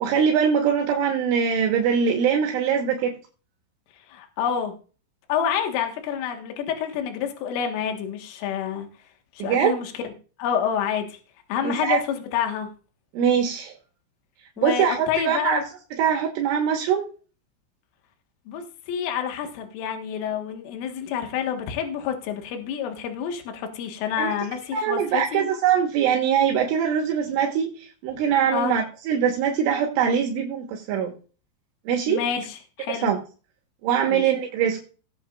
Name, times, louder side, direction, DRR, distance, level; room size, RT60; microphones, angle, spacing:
voice 1, 0.0-3.2 9.4-9.7 11.6-12.0 13.1-13.7 14.6-15.6 16.0-17.0 24.2-24.3 24.7-31.1 31.9-32.2 33.0-33.2 33.8-34.8, right 8 dB, 75° right, 1 dB, 3.6 m, -22 dB
voice 2, 4.1-4.7 5.3-8.9 9.3-10.1 10.4-11.2 11.5-12.7 14.6-15.6 18.5-25.5 28.5-28.8 32.1-33.1 34.1-34.2, left 8 dB, 75° left, 4 dB, 4.0 m, -28 dB
19.0 x 8.3 x 2.5 m, 0.37 s
omnidirectional pair, 5.9 m